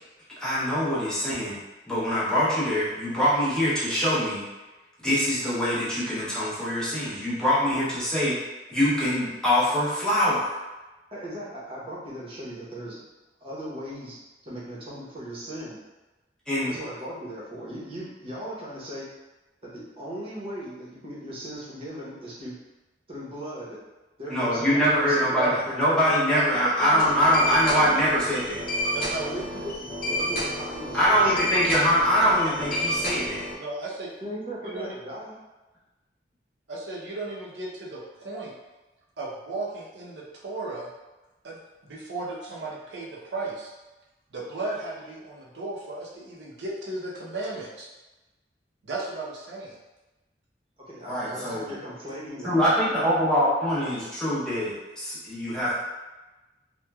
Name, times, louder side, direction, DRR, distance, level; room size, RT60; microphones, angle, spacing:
voice 1, 0.4-1.6 1.9-4.4 5.0-8.4 8.7-10.6 16.5-16.8 24.3-28.6 30.9-33.4 51.1-51.7 52.4-55.8, equal, 5° left, -10 dB, 0.6 m, -23 dB
voice 2, 11.1-13.0 13.4-14.2 14.4-15.8 16.6-19.1 19.7-22.6 23.1-23.8 24.2-25.9 26.8-27.1 27.5-28.0 29.1-31.4 34.2-35.3 50.8-52.5, equal, 35° right, -7 dB, 0.8 m, -38 dB
sound 1, 27.0-33.5, equal, 55° left, 0.5 m, -30 dB
voice 3, 28.9-29.4 32.4-32.5 33.6-34.1 34.6-34.9 36.7-38.5 39.2-40.9 41.4-41.6 41.8-43.7 44.3-47.9 48.8-49.8, right 2 dB, 75° right, -3 dB, 0.6 m, -35 dB
3.0 x 2.2 x 2.2 m, 1.1 s
head